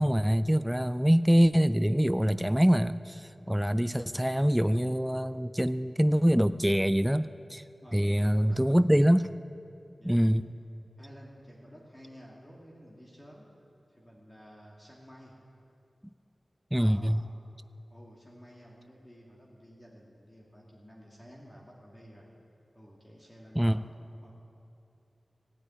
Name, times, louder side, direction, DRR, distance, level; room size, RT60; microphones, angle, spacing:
voice 1, 0.0-7.6 7.9-9.3 10.0-10.5 16.7-17.2 23.6-23.8, equal, 5° right, 12 dB, 0.4 m, -24 dB
voice 2, 7.8-8.6 10.0-10.3 11.0-13.5 13.9-15.3 16.7-17.3 17.9-22.3 22.7-23.8 24.2-24.3, equal, 15° left, -4 dB, 2.7 m, -52 dB
16.0 x 9.4 x 9.0 m, 2.6 s
wide cardioid pair, 65°, 0 cm